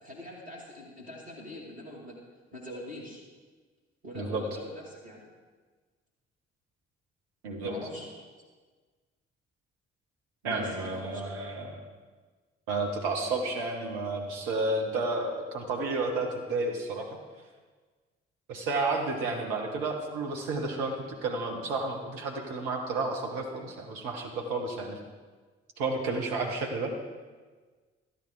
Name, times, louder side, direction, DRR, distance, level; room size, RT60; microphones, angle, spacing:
voice 1, 0.0-2.2 2.5-3.2 4.0-5.2 7.6-8.2 10.4-11.4, left 1 dB, 90° right, -6 dB, 2.3 m, -43 dB
voice 2, 7.4-7.7 10.4-11.7 12.7-17.1 18.5-25.0 25.8-26.9, right 3 dB, 65° right, 2 dB, 1.6 m, -31 dB
13.5 x 8.9 x 4.9 m, 1.4 s
figure-of-eight pair, 40°, 32 cm